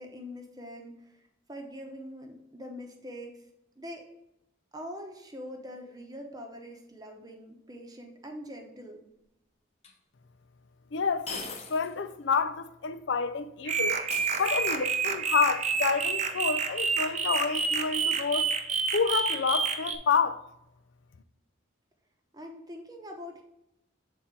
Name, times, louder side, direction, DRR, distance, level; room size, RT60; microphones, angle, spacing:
voice 1, 0.0-3.4 3.8-4.1 4.7-9.0 22.3-23.4, equal, 20° right, 0.9 m, -43 dB
sound 1, 9.8-9.9 11.3-12.0 12.3-12.4 14.1-15.0, left 4 dB, 30° left, 1.0 m, -40 dB
voice 2, 10.9-11.4 11.7-14.0 14.4-18.5 18.9-20.4, left 5 dB, 65° left, 0.5 m, -28 dB
sound 2, 13.7-20.0, right 5 dB, 35° right, 0.5 m, -29 dB
7.2 x 4.2 x 3.7 m
head